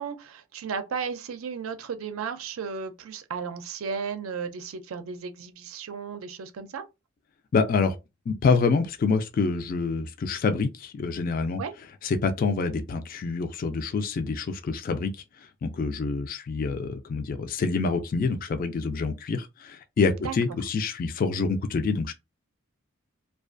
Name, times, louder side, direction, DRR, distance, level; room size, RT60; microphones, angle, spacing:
voice 1, 0.0-6.8 11.6-11.7 20.2-20.3, right 6 dB, 85° right, 0.4 m, -34 dB
voice 2, 7.5-7.9 8.3-11.6 12.0-15.1 15.6-22.1, left 4 dB, 45° left, 0.3 m, -26 dB
2.4 x 2.3 x 2.4 m
head